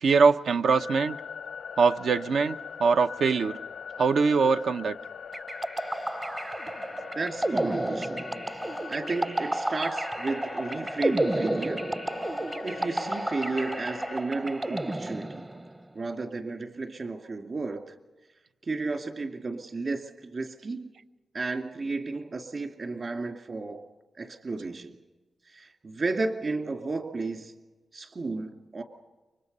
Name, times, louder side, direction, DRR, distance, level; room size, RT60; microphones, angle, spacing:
voice 1, 0.0-1.2 1.8-3.6 4.0-5.0, right 5 dB, 80° right, 0.8 m, -23 dB
sound 1, 0.7-14.2, left 6 dB, 85° left, 0.7 m, -42 dB
sound 2, 5.3-15.8, right 1 dB, 20° right, 0.7 m, -31 dB
voice 2, 7.1-8.3 8.9-11.8 12.6-15.5 15.9-17.9 18.6-20.9 21.3-23.8 24.2-25.0 25.5-27.5 27.9-28.8, right 3 dB, 45° right, 2.4 m, -33 dB
29.5 x 24.5 x 5.4 m
wide cardioid pair, 115°, 0 cm